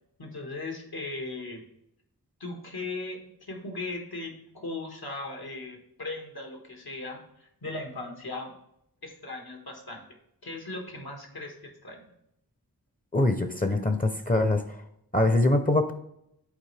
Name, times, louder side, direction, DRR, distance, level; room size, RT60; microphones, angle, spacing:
voice 1, 0.2-1.6 2.4-3.2 3.5-8.5 9.0-10.0 10.4-12.0, left 2 dB, 80° left, 1 dB, 1.7 m, -38 dB
voice 2, 13.1-14.8 15.1-15.9, left 2 dB, 25° left, 8 dB, 0.7 m, -23 dB
10.5 x 4.3 x 3.4 m, 0.76 s
wide cardioid pair, 50°, 37 cm